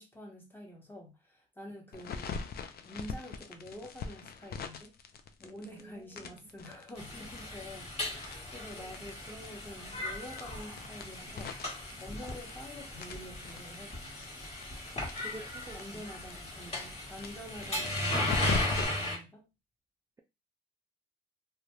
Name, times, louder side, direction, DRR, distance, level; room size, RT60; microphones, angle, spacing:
voice 1, 0.0-2.4 2.8-4.9 5.4-14.1 15.7-19.5, equal, 10° left, 1.0 m, -47 dB
sound 1, 1.9-5.8 6.1-9.2 9.4-9.5 9.8-9.9 10.3-12.7 13.0-16.0 16.3-16.4 16.6-16.7 17.1-18.9, left 5 dB, 50° left, 0.5 m, -39 dB
voice 2, 5.6-6.0 15.2-16.0, right 2 dB, 15° right, 0.3 m, -47 dB
sound 2, 7.0-19.2, left 1 dB, 30° left, 1.3 m, -37 dB
2.4 x 2.3 x 3.1 m
cardioid pair, 90°, 20 cm